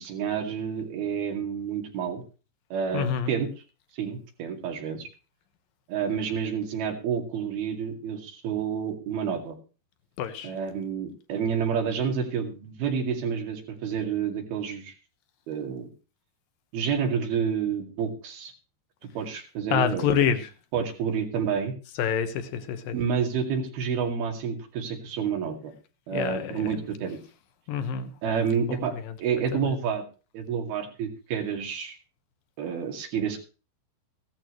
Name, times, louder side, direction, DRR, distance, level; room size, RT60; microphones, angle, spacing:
voice 1, 0.0-2.2 2.7-3.5 4.0-5.1 5.9-9.6 10.4-14.9 15.5-15.9 16.7-18.5 19.2-20.1 20.7-21.7 22.9-25.7 26.1-27.2 28.2-28.9 29.2-30.0 30.3-32.0 32.6-33.4, right 7 dB, 75° right, 3 dB, 4.2 m, -29 dB
voice 2, 2.9-3.3 10.2-10.5 19.7-20.5 22.0-23.0 26.1-26.7 27.7-28.1 28.7-29.1 29.5-29.7, left 8 dB, 70° left, 9 dB, 2.8 m, -27 dB
16.5 x 13.0 x 3.2 m, 0.34 s
omnidirectional pair, 4.5 m